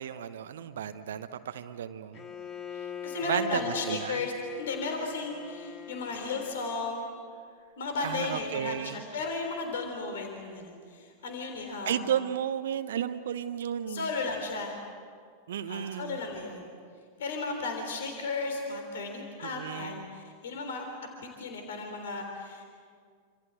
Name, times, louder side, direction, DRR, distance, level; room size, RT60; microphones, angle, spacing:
voice 1, 0.0-2.3 3.3-4.2 8.0-9.0 11.8-14.1 15.5-16.2 19.4-20.1, right 9 dB, 60° right, 10 dB, 1.0 m, -33 dB
Bowed string instrument, 2.1-6.9, left 7 dB, 25° left, 2.1 m, -42 dB
voice 2, 2.7-7.1 7.8-12.1 13.9-14.8 15.7-16.7 17.2-20.8 21.2-22.6, left 3 dB, 60° left, 4 dB, 3.6 m, -35 dB
28.5 x 26.5 x 7.9 m, 2.1 s
figure-of-eight pair, 90°, 0 cm